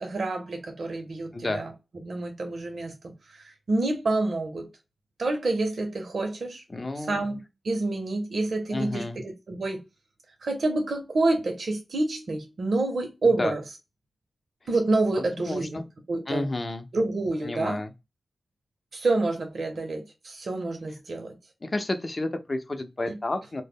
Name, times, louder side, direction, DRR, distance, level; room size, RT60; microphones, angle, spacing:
voice 1, 0.0-2.9 3.3-4.7 5.2-6.6 7.0-7.4 7.6-9.8 10.4-13.6 14.7-15.8 16.1-16.5 16.9-17.8 18.9-21.3 23.1-23.2, right 2 dB, 75° right, 0.6 m, -28 dB
voice 2, 1.3-1.6 6.7-7.2 8.7-9.2 13.2-13.5 15.2-15.9 16.3-16.9 17.4-17.9 21.6-23.6, left 2 dB, 45° left, 0.5 m, -31 dB
2.0 x 2.0 x 3.4 m
cardioid pair, 45°, 0 cm